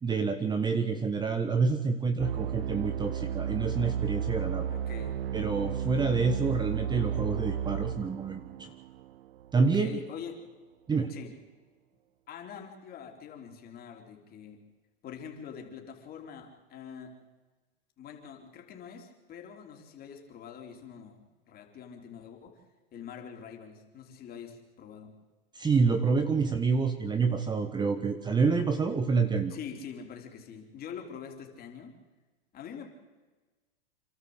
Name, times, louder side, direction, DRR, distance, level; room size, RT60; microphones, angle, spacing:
voice 1, 0.0-4.7 5.3-8.7 9.5-10.0 10.9-11.1 25.5-29.6, right 4 dB, 15° right, 8 dB, 1.3 m, -28 dB
sound 1, 2.2-9.7, right 9 dB, 75° right, 0.7 m, -33 dB
voice 2, 4.7-5.2 9.6-10.4 11.1-11.3 12.3-14.6 15.0-17.1 18.0-22.6 22.9-25.1 29.5-31.9 32.5-32.9, left 7 dB, 30° left, 3 dB, 3.7 m, -44 dB
28.0 x 12.5 x 8.1 m, 1.3 s
hypercardioid pair, 120°, 30 cm